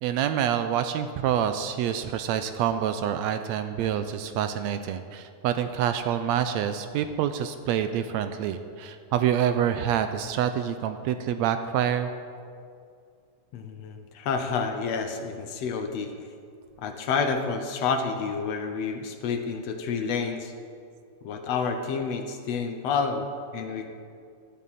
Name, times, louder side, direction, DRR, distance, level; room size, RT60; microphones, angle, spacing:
voice 1, 0.0-12.1, right 9 dB, 80° right, 9 dB, 1.7 m, -27 dB
voice 2, 13.5-16.1 16.8-20.5 21.2-23.9, left 5 dB, 70° left, 6 dB, 1.8 m, -29 dB
16.0 x 12.0 x 4.2 m, 2.3 s
omnidirectional pair, 3.3 m